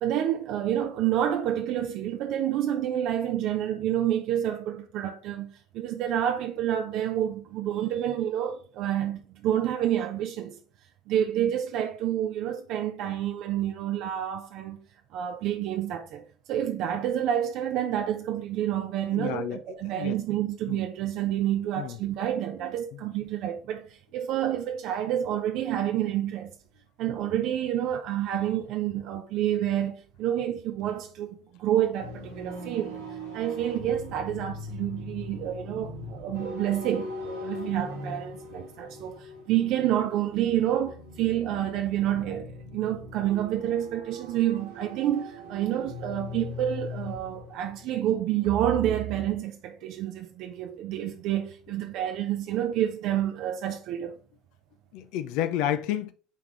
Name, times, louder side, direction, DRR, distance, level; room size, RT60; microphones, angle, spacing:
voice 1, 0.0-10.6 11.1-14.8 15.1-23.9 24.1-26.5 27.0-33.0 33.3-54.1, right 11 dB, 55° right, 0.6 m, -28 dB
voice 2, 19.1-19.6 19.9-20.2 20.7-20.8 21.8-22.0 22.9-23.0 54.9-56.1, left 11 dB, 60° left, 0.5 m, -30 dB
sound 1, 32.0-49.4, equal, 90° right, 1.9 m, -40 dB
8.4 x 3.6 x 3.2 m
figure-of-eight pair, 65°, 0 cm